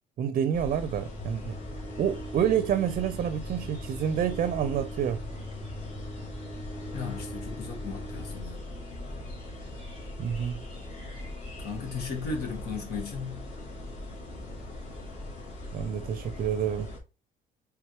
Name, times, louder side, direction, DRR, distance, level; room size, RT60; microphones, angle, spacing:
voice 1, 0.2-1.6 2.0-5.2 10.2-10.6 15.7-16.9, right 9 dB, 50° right, 0.5 m, -28 dB
sound 1, 0.5-17.0, left 1 dB, 45° left, 2.2 m, -40 dB
sound 2, 0.9-8.5, left 1 dB, 90° left, 2.0 m, -42 dB
voice 2, 6.9-8.7 11.6-13.5, left 5 dB, 70° left, 1.6 m, -36 dB
4.6 x 3.5 x 3.0 m
cardioid pair, 110°, 17 cm